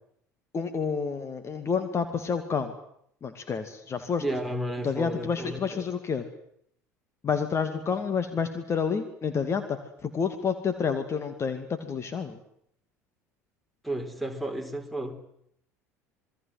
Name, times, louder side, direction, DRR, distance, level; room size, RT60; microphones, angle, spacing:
voice 1, 0.5-2.7 3.2-4.2 4.8-6.2 7.2-12.4, left 6 dB, 30° left, 9 dB, 2.6 m, -29 dB
voice 2, 4.2-5.9 13.8-15.1, right 1 dB, ahead, 9 dB, 4.5 m, -32 dB
28.0 x 22.0 x 7.9 m, 0.71 s
figure-of-eight pair, 65°, 9 cm